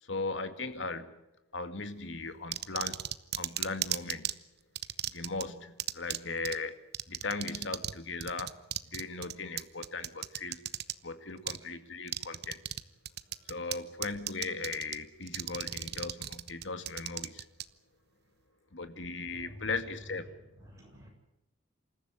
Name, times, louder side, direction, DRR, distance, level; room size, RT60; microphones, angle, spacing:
voice 1, 0.0-1.1 1.5-3.0 3.4-4.3 5.1-6.8 7.1-8.6 8.9-10.6 11.0-12.6 13.5-17.4 18.7-20.3, left 3 dB, 65° left, 9 dB, 2.1 m, -38 dB
sound 1, 2.5-4.3 4.8-5.4 5.8-6.2 6.5-6.6 6.9-10.9 11.5-11.6 12.1-12.8 13.1-13.8 14.0-15.0 15.3-17.6, right 12 dB, 55° right, 0.9 m, -34 dB
voice 2, 19.2-20.0 20.3-21.1, equal, 15° right, 0 dB, 7.9 m, -51 dB
27.5 x 14.5 x 9.8 m, 0.92 s
head